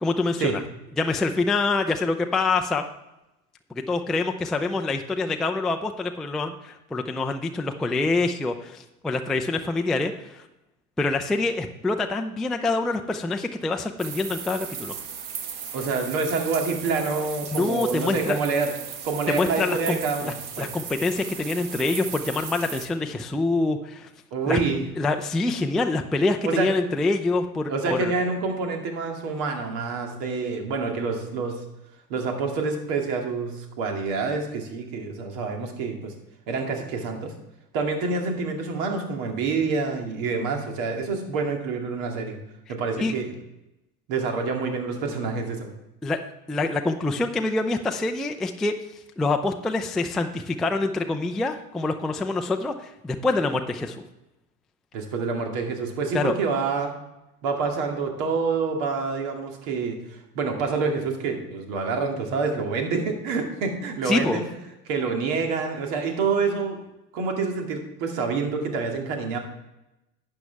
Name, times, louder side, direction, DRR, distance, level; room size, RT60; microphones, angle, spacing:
voice 1, 0.0-0.6 1.0-2.8 3.9-10.4 11.0-15.0 17.5-18.4 19.3-20.0 20.2-24.1 24.5-24.6 25.0-28.1 43.0-43.1 46.0-46.2 46.5-48.7 49.2-54.0 56.1-56.3 64.1-64.4, left 3 dB, ahead, 4 dB, 0.3 m, -25 dB
sound 1, 14.0-22.9, right 7 dB, 45° right, 1.4 m, -37 dB
voice 2, 15.7-18.7 19.0-20.7 24.3-24.9 26.4-26.7 27.7-31.6 32.1-36.1 36.5-37.3 37.7-42.4 42.7-43.3 44.1-45.7 54.9-56.9 57.4-60.0 60.4-64.5 64.9-66.8 67.1-69.4, right 4 dB, 60° right, 3 dB, 2.3 m, -27 dB
12.0 x 8.6 x 3.4 m, 0.94 s
hypercardioid pair, 85°, 47 cm